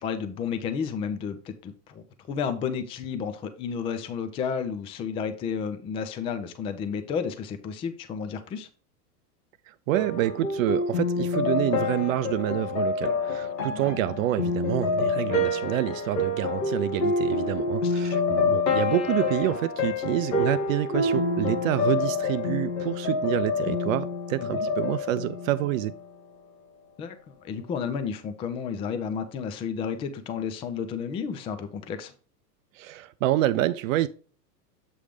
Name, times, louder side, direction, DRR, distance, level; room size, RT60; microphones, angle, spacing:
voice 1, 0.0-8.7 13.8-13.9 17.8-18.2 24.4-24.7 27.0-32.1, left 6 dB, 15° left, 0.3 m, -32 dB
voice 2, 9.7-25.9 32.7-34.1, right 14 dB, 55° right, 0.5 m, -27 dB
sound 1, 9.9-26.0, left 3 dB, 85° left, 2.0 m, -27 dB
7.6 x 3.3 x 4.9 m
hypercardioid pair, 110°, 49 cm